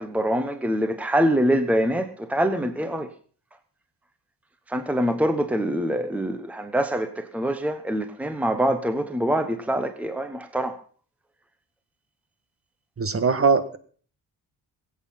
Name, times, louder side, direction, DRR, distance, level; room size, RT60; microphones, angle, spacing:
voice 1, 0.0-3.1 4.7-10.8, equal, 5° right, 9 dB, 1.1 m, -24 dB
voice 2, 13.0-13.8, right 5 dB, 35° right, 11 dB, 1.7 m, -21 dB
21.0 x 8.6 x 5.7 m, 0.43 s
cardioid pair, 125°, 39 cm